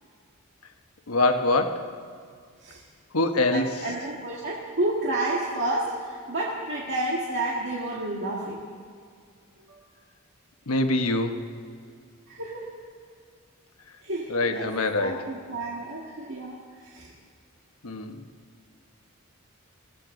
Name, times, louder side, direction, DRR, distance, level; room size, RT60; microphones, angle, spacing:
voice 1, 1.1-1.9 3.1-3.9 10.7-11.4 14.3-15.3 17.8-18.2, left 2 dB, 85° left, 6 dB, 1.2 m, -24 dB
voice 2, 3.5-8.6 9.7-9.8 12.3-12.7 14.0-14.7 15.0-16.6 16.9-17.1, right 2 dB, 60° right, -4 dB, 1.9 m, -30 dB
22.5 x 16.5 x 3.9 m, 2.2 s
head